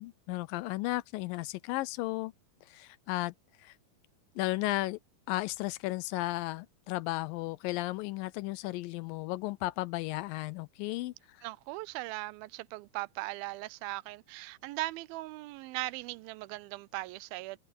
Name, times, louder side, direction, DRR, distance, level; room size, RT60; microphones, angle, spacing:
voice 1, 0.0-2.3 2.7-3.7 4.4-5.0 5.3-11.1, left 19 dB, 80° left, 2.2 m, -34 dB
voice 2, 11.4-17.6, right 20 dB, 90° right, 2.4 m, -39 dB
omnidirectional pair, 4.2 m